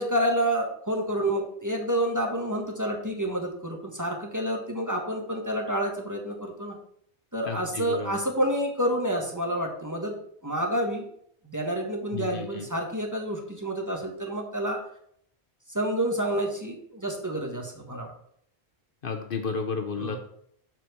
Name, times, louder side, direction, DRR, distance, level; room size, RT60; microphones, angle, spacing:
voice 1, 0.0-6.8 7.3-10.1 10.4-11.0 11.4-14.8 15.7-18.1 20.0-20.2, right 1 dB, 15° right, 1 dB, 1.5 m, -29 dB
voice 2, 7.5-8.2 12.1-12.7 19.0-20.2, left 5 dB, 55° left, 6 dB, 1.0 m, -32 dB
7.4 x 4.6 x 6.8 m, 0.67 s
omnidirectional pair, 1.1 m